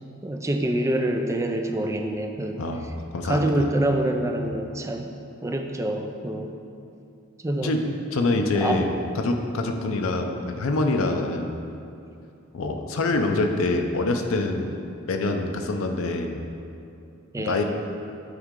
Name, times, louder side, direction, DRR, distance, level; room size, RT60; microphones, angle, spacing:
voice 1, 0.2-2.6 3.2-5.1 5.4-6.5 7.4-7.7 8.6-8.8 17.3-17.6, right 1 dB, 15° right, 4 dB, 0.3 m, -26 dB
voice 2, 2.6-3.7 7.6-11.5 12.5-14.8 15.1-16.4 17.4-17.6, left 2 dB, 70° left, 4 dB, 0.5 m, -25 dB
9.1 x 3.6 x 3.7 m, 2.6 s
head